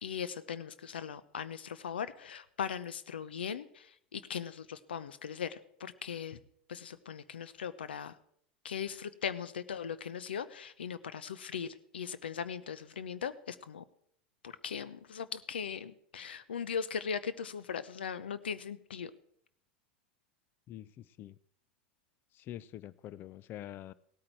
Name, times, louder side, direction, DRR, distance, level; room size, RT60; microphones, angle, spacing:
voice 1, 0.0-6.4 6.7-8.2 8.6-13.8 14.4-19.1, left 7 dB, 90° left, 0.7 m, -39 dB
voice 2, 20.7-21.3 22.3-23.9, left 12 dB, 40° left, 0.4 m, -45 dB
16.5 x 8.7 x 4.6 m
hypercardioid pair, 100°, 5 cm